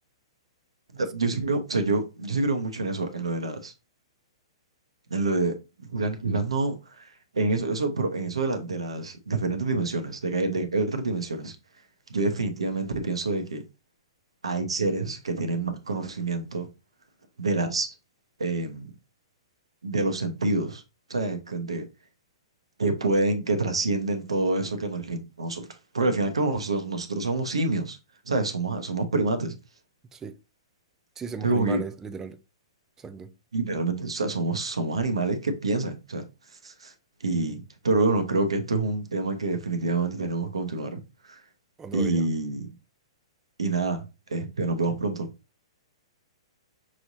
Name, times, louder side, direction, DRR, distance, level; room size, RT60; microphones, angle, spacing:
voice 1, 0.9-3.7 5.1-7.1 7.3-11.6 12.1-13.6 14.4-16.7 17.4-17.9 18.4-18.9 19.8-20.8 21.1-21.8 22.8-25.6 25.9-28.0 28.3-29.5 31.4-31.8 33.5-36.3 36.6-36.9 37.2-41.0 41.3-41.4 41.9-42.7 43.6-45.3, right 3 dB, 85° right, 1.0 m, -27 dB
voice 2, 31.2-32.4 33.0-33.3 41.8-42.3, right 4 dB, 15° right, 0.5 m, -36 dB
6.0 x 3.2 x 2.7 m
hypercardioid pair, 120°, 3 cm